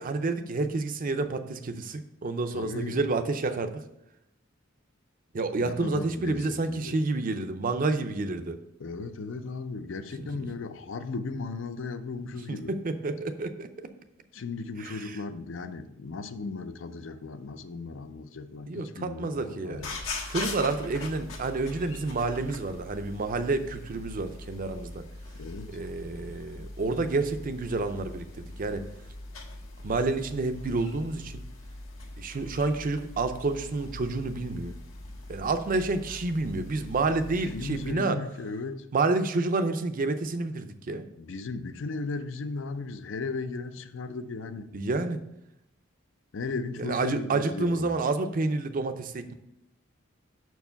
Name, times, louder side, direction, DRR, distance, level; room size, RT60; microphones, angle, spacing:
voice 1, 0.0-3.8 5.3-8.6 12.5-13.9 14.8-15.2 18.7-19.9 20.3-25.0 25.7-28.8 29.8-31.4 32.2-34.7 35.3-38.2 38.9-41.1 44.7-45.2 46.8-49.3, right 3 dB, 45° right, 0.5 m, -29 dB
voice 2, 2.5-3.0 5.6-7.0 8.8-12.7 14.3-20.0 25.4-25.8 37.5-38.8 41.2-44.7 46.3-48.0, left 3 dB, 65° left, 0.5 m, -36 dB
sound 1, 19.7-37.9, left 2 dB, 85° left, 1.4 m, -41 dB
6.0 x 4.6 x 5.7 m
head